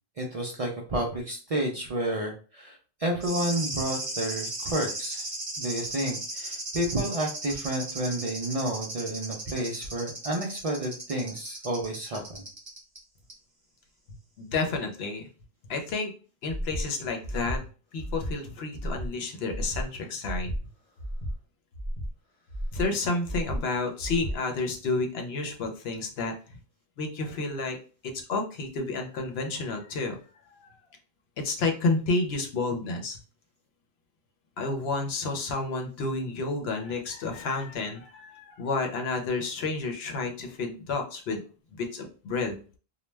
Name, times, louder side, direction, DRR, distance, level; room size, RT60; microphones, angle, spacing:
voice 1, 0.2-5.2 5.6-12.5, right 1 dB, 50° right, 0 dB, 0.4 m, -30 dB
sound 1, 3.2-13.0 13.3-13.4, right 2 dB, 30° right, 0.8 m, -36 dB
voice 2, 14.4-15.3 15.7-16.1 16.4-20.5 22.7-26.6 27.0-27.8 28.3-30.2 31.4-33.2 34.6-41.4 41.7-42.6, left 3 dB, 75° left, 3 dB, 0.9 m, -30 dB
Breathing, 16.5-16.8 17.2-17.6 18.0-18.3 18.7-19.1 19.5-19.8 20.2-20.6 21.0-21.3 21.7-22.1 22.5-22.8 23.2-23.6 24.0-24.3, equal, 40° left, 0.7 m, -33 dB
2.2 x 2.1 x 3.1 m, 0.37 s
omnidirectional pair, 1.1 m